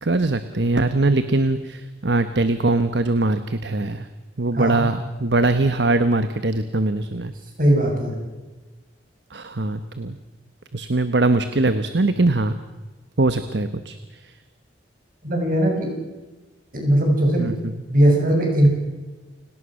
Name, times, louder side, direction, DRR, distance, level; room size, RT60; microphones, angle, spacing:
voice 1, 0.0-4.1 4.4-7.3 9.3-10.2 10.7-12.5 13.2-14.3 17.4-17.7, right 2 dB, 65° right, 11 dB, 1.1 m, -22 dB
voice 2, 4.5-4.9 7.6-8.2 15.2-15.9 16.7-17.5 17.9-18.7, right 1 dB, 50° right, 1 dB, 7.4 m, -19 dB
29.5 x 18.5 x 6.5 m, 1.2 s
head